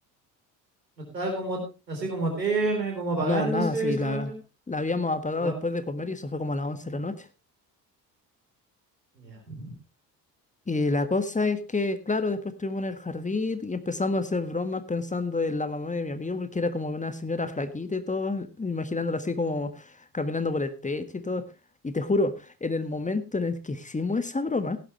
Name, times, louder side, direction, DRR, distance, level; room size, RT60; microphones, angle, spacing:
voice 1, 1.1-1.6 1.9-4.3 5.4-5.6 9.2-9.7, right 2 dB, 90° right, 2 dB, 3.8 m, -29 dB
voice 2, 3.2-4.3 4.7-7.3 10.7-21.5 21.8-24.8, left 3 dB, 15° left, 11 dB, 1.5 m, -29 dB
16.5 x 10.5 x 3.1 m, 0.29 s
figure-of-eight pair, 55°, 49 cm